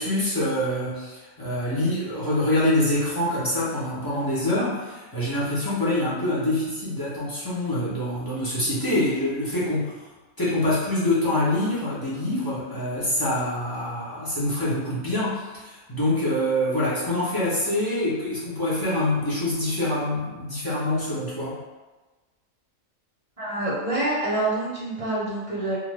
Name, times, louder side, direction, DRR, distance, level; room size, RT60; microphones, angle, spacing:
voice 1, 0.0-10.0 10.4-21.6, left 1 dB, 30° left, -10 dB, 0.4 m, -25 dB
voice 2, 23.4-25.8, right 2 dB, 30° right, -8 dB, 0.6 m, -26 dB
2.5 x 2.5 x 3.2 m, 1.2 s
omnidirectional pair, 1.7 m